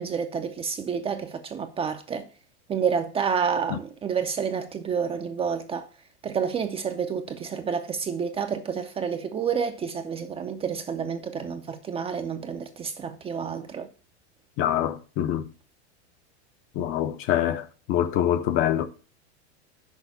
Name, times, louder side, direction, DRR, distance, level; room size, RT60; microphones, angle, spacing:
voice 1, 0.0-2.3 2.7-5.9 6.2-13.9, right 6 dB, 15° right, 0.5 m, -29 dB
voice 2, 14.6-15.5 16.8-18.9, left 11 dB, 35° left, 0.7 m, -25 dB
6.4 x 4.7 x 6.7 m
supercardioid pair, 135°, 34 cm